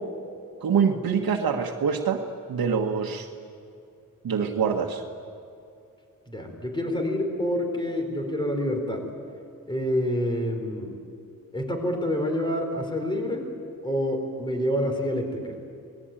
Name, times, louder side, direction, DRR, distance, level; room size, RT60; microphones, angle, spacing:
voice 1, 0.6-2.2 2.5-3.3 4.2-5.0, right 6 dB, 80° right, 2 dB, 1.6 m, -25 dB
voice 2, 6.3-9.1 9.7-10.9 11.5-13.5 13.8-15.5, equal, 15° left, 4 dB, 4.4 m, -27 dB
27.0 x 20.0 x 9.1 m, 2.5 s
wide cardioid pair, 115°, 35 cm